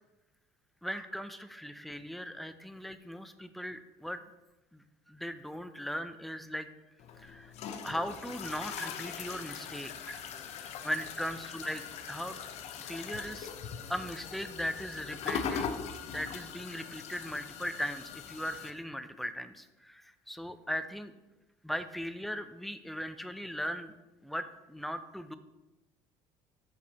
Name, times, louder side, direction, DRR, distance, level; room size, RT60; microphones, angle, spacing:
voice 1, 0.8-4.2 4.7-6.7 7.2-7.5 7.8-10.2 10.8-12.4 12.9-13.5 13.9-15.7 16.0-21.1 21.6-23.9 24.2-25.4, equal, ahead, 11 dB, 0.3 m, -38 dB
sound 1, 7.0-18.7, left 7 dB, 60° left, 0.6 m, -41 dB
6.1 x 5.7 x 2.9 m, 1.0 s
cardioid pair, 110°, 13 cm